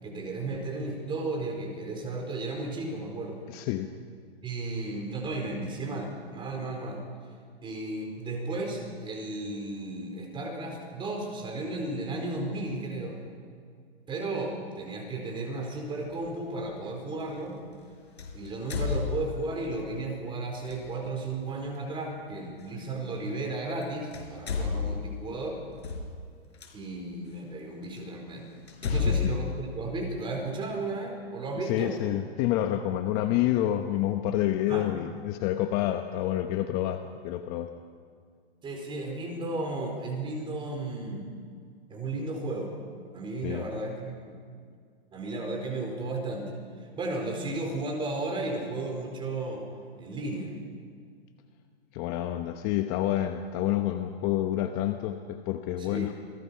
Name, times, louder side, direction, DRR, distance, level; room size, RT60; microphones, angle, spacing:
voice 1, 0.0-3.4 4.4-7.0 7.6-13.2 14.1-17.6 18.3-25.6 26.7-28.5 28.9-31.9 34.7-34.9 38.6-41.3 41.9-42.7 43.1-44.3 45.1-46.5 46.9-49.7 50.0-50.5 55.8-56.1, right 2 dB, 15° right, 2 dB, 4.5 m, -34 dB
voice 2, 3.5-3.9 28.8-29.3 31.6-37.7 43.4-43.7 51.9-56.1, left 13 dB, 30° left, 7 dB, 0.9 m, -28 dB
sound 1, 16.1-16.3 18.2-19.7 20.6-20.8 22.6-22.7 23.7-23.8 24.1-26.7 27.4-27.5 28.0-28.1 28.7-30.5, left 5 dB, 85° left, 5.0 m, -31 dB
27.5 x 19.0 x 5.8 m, 2.1 s
hypercardioid pair, 140°, 32 cm